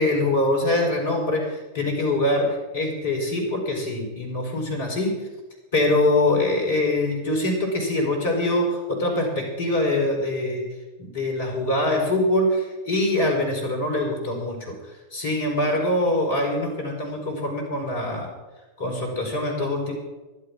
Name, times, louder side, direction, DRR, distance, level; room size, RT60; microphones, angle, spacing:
voice 1, 0.0-5.2 5.7-10.6 11.0-14.8 15.1-18.3 18.8-19.9, left 1 dB, 60° left, 1 dB, 5.0 m, -24 dB
14.5 x 11.5 x 6.2 m, 1.1 s
figure-of-eight pair, 90°, 0 cm